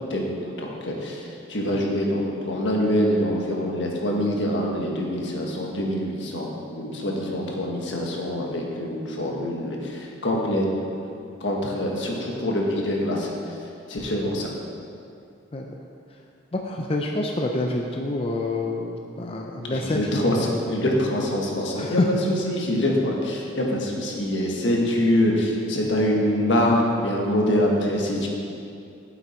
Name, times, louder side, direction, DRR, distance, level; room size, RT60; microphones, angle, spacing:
voice 1, 0.1-10.6 11.4-13.6 13.9-14.5 19.7-22.0 22.3-28.3, left 1 dB, 80° left, -1 dB, 1.5 m, -25 dB
voice 2, 16.5-20.5 21.8-22.1, left 2 dB, 30° left, 1 dB, 0.5 m, -27 dB
8.7 x 7.8 x 4.4 m, 2.5 s
head